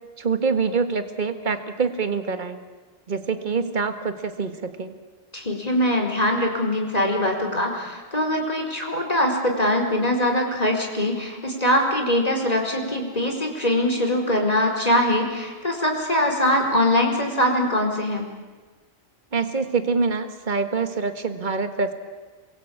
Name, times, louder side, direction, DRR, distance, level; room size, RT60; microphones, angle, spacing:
voice 1, 0.2-2.6 3.1-4.9 19.3-21.9, right 4 dB, 40° right, 8 dB, 1.8 m, -25 dB
voice 2, 5.3-18.3, left 1 dB, 30° left, 2 dB, 4.7 m, -22 dB
28.5 x 23.5 x 8.7 m, 1.3 s
omnidirectional pair, 1.3 m